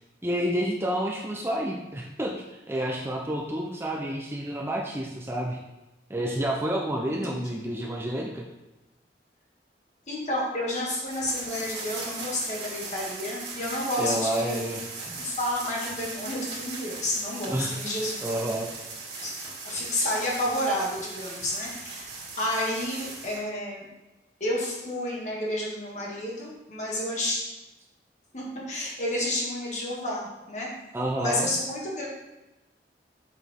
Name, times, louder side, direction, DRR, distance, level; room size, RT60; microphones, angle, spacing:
voice 1, 0.2-5.6 6.1-8.4 14.0-14.8 15.1-15.2 17.5-17.8 18.2-18.7 30.9-31.5, right 1 dB, 15° right, -2 dB, 0.6 m, -29 dB
voice 2, 10.1-14.6 15.2-18.1 19.2-19.3 19.6-23.9 24.4-27.4 28.3-30.7 31.2-32.0, left 1 dB, 40° left, -4 dB, 1.9 m, -30 dB
sound 1, 11.1-23.4, right 3 dB, 70° right, 1.9 m, -38 dB
6.3 x 6.0 x 3.6 m, 1.0 s
head